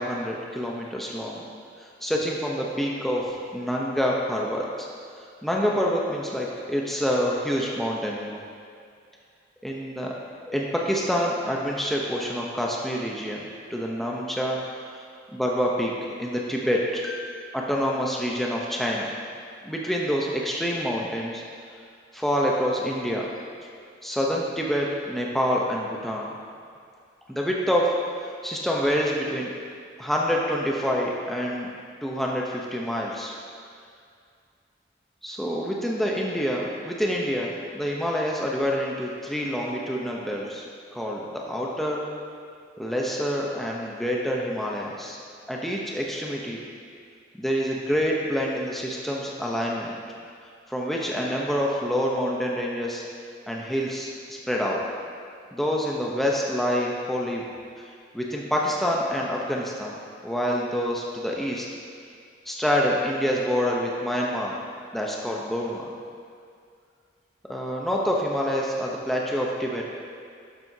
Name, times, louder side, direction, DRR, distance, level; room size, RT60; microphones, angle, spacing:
voice 1, 0.0-1.4 1.8-4.9 5.2-8.4 9.6-10.1 10.5-13.4 13.7-15.0 15.3-19.1 19.6-21.4 22.1-23.3 24.0-26.3 27.3-27.9 28.2-29.5 30.0-31.7 32.0-33.3 35.2-42.0 42.8-45.2 45.5-46.7 47.4-49.9 50.7-53.1 53.5-54.8 55.5-57.4 57.8-60.0 60.2-61.7 62.5-64.5 64.9-65.9 67.5-69.8, equal, ahead, -3 dB, 0.7 m, -27 dB
11.5 x 7.6 x 2.8 m, 2.3 s
head